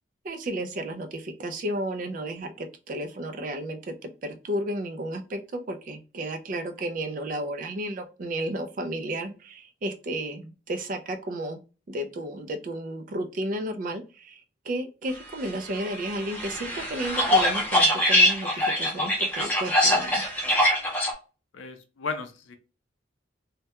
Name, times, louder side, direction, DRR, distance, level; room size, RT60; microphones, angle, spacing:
voice 1, 0.2-3.9 4.2-11.6 11.9-20.2, right 1 dB, 45° right, 8 dB, 0.3 m, -33 dB
sound 1, 15.7-21.1, left 1 dB, 10° left, 0.6 m, -23 dB
voice 2, 21.5-22.6, left 4 dB, 85° left, 7 dB, 0.5 m, -35 dB
2.2 x 2.1 x 2.8 m, 0.33 s
head